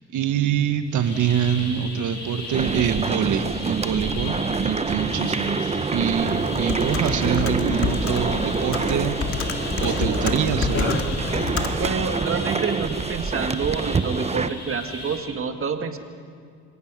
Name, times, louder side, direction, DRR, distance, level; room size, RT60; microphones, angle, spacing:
voice 1, 0.1-9.5 9.8-11.0, right 8 dB, 75° right, 8 dB, 1.5 m, -25 dB
sound 1, 0.8-15.2, left 2 dB, 65° left, 7.7 m, -36 dB
sound 2, 2.5-14.5, right 4 dB, 20° right, 0.7 m, -27 dB
Computer keyboard, 6.0-12.2, left 5 dB, 50° left, 2.0 m, -28 dB
voice 2, 11.8-16.0, right 5 dB, 45° right, 6 dB, 1.7 m, -27 dB
27.0 x 17.5 x 6.2 m, 2.2 s
cardioid pair, 90°, 30 cm